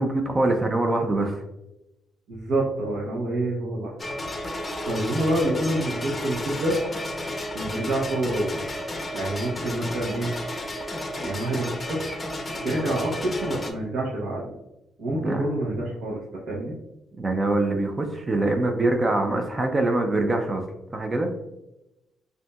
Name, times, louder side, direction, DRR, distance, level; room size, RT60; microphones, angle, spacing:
voice 1, 0.0-1.4 15.2-15.4 17.2-20.7 20.9-21.3, right 2 dB, 25° right, 4 dB, 0.5 m, -24 dB
voice 2, 2.3-3.9 4.4-6.8 7.5-8.6 9.1-10.3 10.7-12.2 12.6-14.5 15.0-16.7, right 1 dB, 80° right, -6 dB, 1.0 m, -27 dB
sound 1, 4.0-13.7, left 1 dB, 25° left, 0.6 m, -32 dB
5.2 x 2.7 x 2.3 m, 0.91 s
cardioid pair, 90°, 0 cm